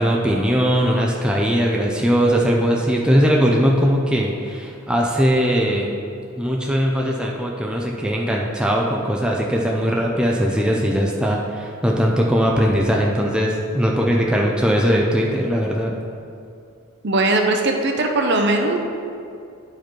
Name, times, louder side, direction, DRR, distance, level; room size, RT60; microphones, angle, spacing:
voice 1, 0.0-5.9 6.4-16.0, equal, 5° right, -2 dB, 0.5 m, -20 dB
voice 2, 17.0-18.8, right 2 dB, 50° right, 3 dB, 0.7 m, -19 dB
10.5 x 4.9 x 4.6 m, 2.4 s
head